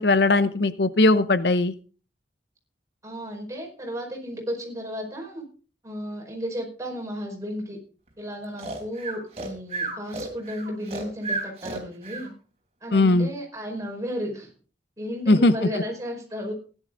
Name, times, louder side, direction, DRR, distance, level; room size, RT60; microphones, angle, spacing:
voice 1, 0.0-1.7 12.9-13.3 15.3-15.5, left 2 dB, 70° left, 13 dB, 0.8 m, -19 dB
voice 2, 3.0-5.4 5.8-7.8 8.2-12.3 12.8-14.5 15.0-16.5, equal, 20° right, 0 dB, 5.0 m, -33 dB
Breathing, 8.6-12.3, right 3 dB, 35° right, 3.6 m, -32 dB
16.0 x 11.0 x 3.9 m, 0.38 s
head